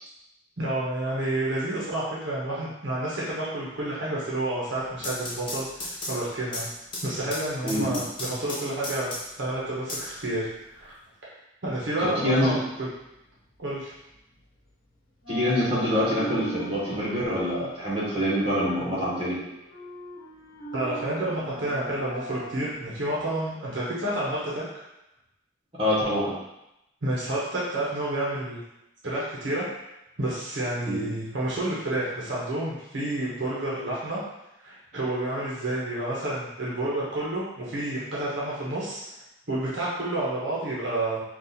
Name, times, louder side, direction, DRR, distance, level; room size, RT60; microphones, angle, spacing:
voice 1, 0.6-6.7 7.0-10.5 10.7-11.0 11.6-12.9 13.6-13.9 20.7-24.6 27.0-28.6 29.0-29.7 30.2-34.2 34.6-39.0 39.5-41.2, right 1 dB, 65° right, -6 dB, 0.8 m, -29 dB
sound 1, 4.8-9.5 9.9-10.9, left 1 dB, 25° left, 0.6 m, -35 dB
voice 2, 7.6-8.0 12.0-12.6 15.3-19.4 25.7-26.3 30.9-31.1, equal, 25° right, -8 dB, 1.1 m, -25 dB
sound 2, 12.2-14.9 15.1-23.3, right 2 dB, 70° left, 1.0 m, -41 dB
2.8 x 2.4 x 3.8 m, 0.89 s
head